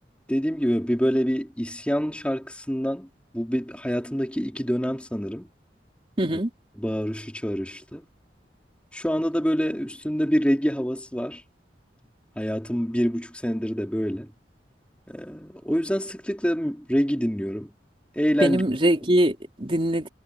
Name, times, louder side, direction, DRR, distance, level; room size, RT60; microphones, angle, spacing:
voice 1, 0.3-5.5 6.3-6.4 6.8-8.1 8.9-11.4 12.4-14.3 15.1-17.7 18.1-18.6, equal, 5° left, 4.3 m, -26 dB
voice 2, 6.2-6.5 18.4-20.1, right 1 dB, 30° right, 3.7 m, -22 dB
head